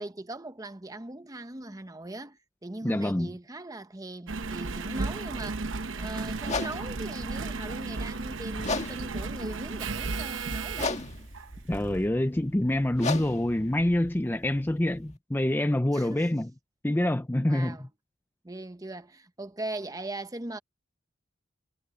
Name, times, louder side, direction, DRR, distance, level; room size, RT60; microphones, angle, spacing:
voice 1, 0.0-5.7 5.9-11.0 15.9-16.3 17.5-17.9 18.4-20.6, right 2 dB, 20° right, 0.9 m, -40 dB
voice 2, 2.8-3.3 11.7-16.5 16.8-17.9, left 1 dB, 10° left, 0.5 m, -26 dB
Engine, 4.3-12.1 12.7-12.8, right 3 dB, 80° right, 0.9 m, -34 dB
sound 1, 6.4-15.2, left 3 dB, 35° left, 1.7 m, -37 dB
head